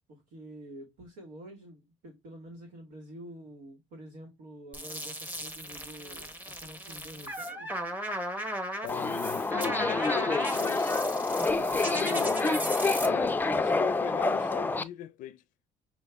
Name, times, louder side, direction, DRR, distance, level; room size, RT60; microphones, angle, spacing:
voice 1, 0.1-7.8 11.8-12.7, right 1 dB, 85° right, 1.4 m, -48 dB
sound 1, 4.7-13.1, equal, 10° right, 1.0 m, -37 dB
voice 2, 8.8-12.4 13.0-15.4, left 11 dB, 70° left, 0.5 m, -40 dB
Subway metro underground, 8.9-14.8, left 3 dB, 15° left, 0.4 m, -27 dB
6.2 x 2.3 x 3.4 m
cardioid pair, 95°, 14 cm